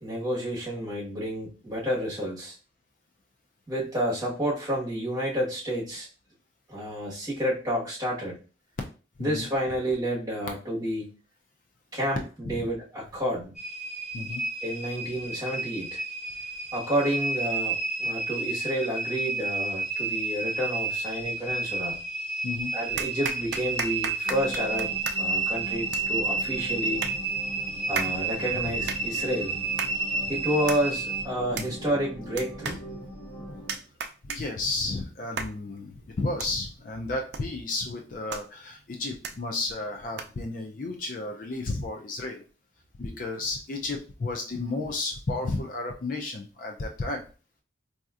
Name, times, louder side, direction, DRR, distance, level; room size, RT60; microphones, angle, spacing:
voice 1, 0.0-2.6 3.7-6.1 6.7-8.4 9.2-11.1 11.9-13.5 14.6-16.0 16.7-22.0 22.7-27.0 27.9-29.6 30.3-32.8, equal, 20° right, -7 dB, 1.3 m, -30 dB
sound 1, 13.5-31.2, right 3 dB, ahead, 1.2 m, -31 dB
sound 2, 21.9-22.4 23.0-40.5, right 5 dB, 60° right, 0.4 m, -39 dB
sound 3, 24.2-33.7, equal, 80° left, 1.2 m, -41 dB
voice 2, 34.2-42.4 43.0-47.2, left 2 dB, 45° left, 2 dB, 0.4 m, -32 dB
4.2 x 2.7 x 2.4 m, 0.35 s
head